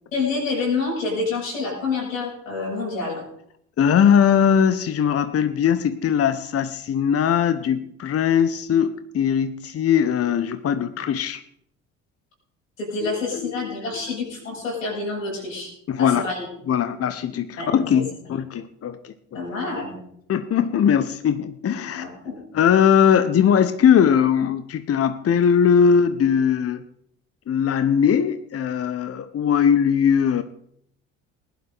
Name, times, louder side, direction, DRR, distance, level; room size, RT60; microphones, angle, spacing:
voice 1, 0.1-3.2 12.8-15.7 16.0-16.4 17.6-17.7 19.3-20.0 21.8-22.4, left 3 dB, 90° left, -4 dB, 7.8 m, -27 dB
voice 2, 3.8-11.4 13.0-13.1 13.4-13.7 15.9-16.3 16.7-19.4 19.7-19.8 20.3-22.0 22.5-26.8 27.5-30.4, left 8 dB, 35° left, 11 dB, 1.0 m, -20 dB
20.5 x 11.5 x 4.0 m, 0.71 s
hypercardioid pair, 55°, 39 cm